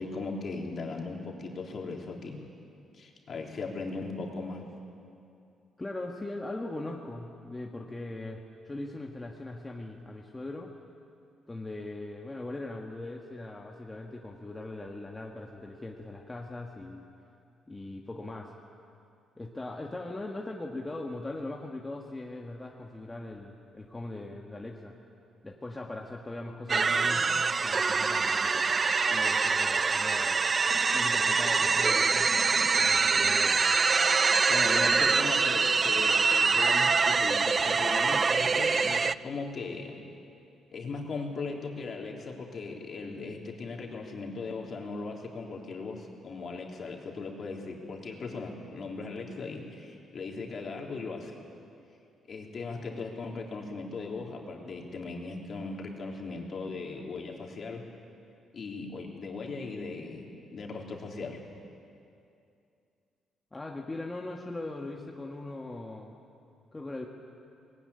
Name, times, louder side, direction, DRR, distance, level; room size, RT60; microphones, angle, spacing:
voice 1, 0.0-2.4 2.9-4.6 34.5-40.0 40.7-51.4 52.3-57.9 58.5-61.5, left 3 dB, 50° left, 0 dB, 3.4 m, -38 dB
voice 2, 5.8-10.7 11.5-17.0 17.7-18.5 19.4-24.9 25.4-27.3 27.6-28.7 29.1-30.5 30.9-33.6 63.5-66.1 66.7-67.1, left 2 dB, 15° left, 0 dB, 1.6 m, -40 dB
sound 1, 26.7-39.1, right 4 dB, 35° right, 0.4 m, -25 dB
19.5 x 17.0 x 9.7 m, 2.5 s
cardioid pair, 90°, 0 cm